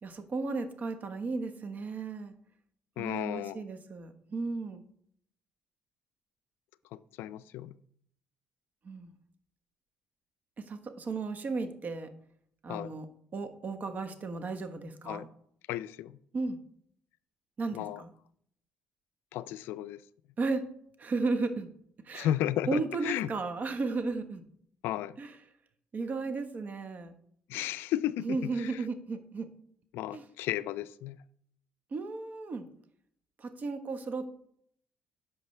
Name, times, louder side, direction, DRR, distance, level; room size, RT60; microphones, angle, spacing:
voice 1, 0.0-2.3 3.0-4.8 8.8-9.1 10.7-12.1 12.6-13.1 13.3-15.3 16.3-16.6 17.6-18.1 20.4-20.7 21.0-21.7 22.0-22.3 22.7-24.4 25.2-25.3 25.9-27.2 28.2-29.5 30.1-30.2 31.9-32.7 33.4-34.3, right 3 dB, 45° right, 8 dB, 1.2 m, -34 dB
voice 2, 3.0-3.6 6.9-7.8 12.7-12.9 15.1-15.3 15.7-16.2 17.7-18.0 19.3-20.0 22.1-23.3 24.8-25.2 27.5-28.8 29.9-31.2, left 12 dB, 75° left, 16 dB, 0.4 m, -34 dB
10.5 x 6.5 x 3.3 m, 0.66 s
supercardioid pair, 75°, 4 cm